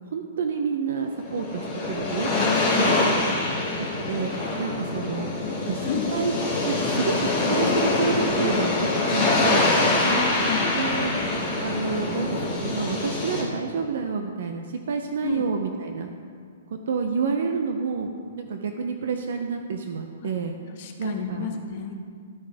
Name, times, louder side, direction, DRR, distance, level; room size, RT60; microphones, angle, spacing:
voice 1, 0.0-2.3 2.7-2.9 3.8-4.3 4.6-5.3 5.7-10.2 10.7-11.1 11.6-16.1 16.7-20.6 21.0-21.5, right 5 dB, 55° right, 5 dB, 0.6 m, -29 dB
sound 1, 1.2-13.4, left 2 dB, ahead, 2.1 m, -24 dB
voice 2, 2.3-3.0 5.4-5.6 5.9-6.1 10.0-10.7 15.2-15.4 20.2-20.3 20.8-21.9, left 6 dB, 35° left, 4 dB, 0.8 m, -30 dB
13.0 x 5.0 x 3.5 m, 2.1 s
hypercardioid pair, 175°, 0 cm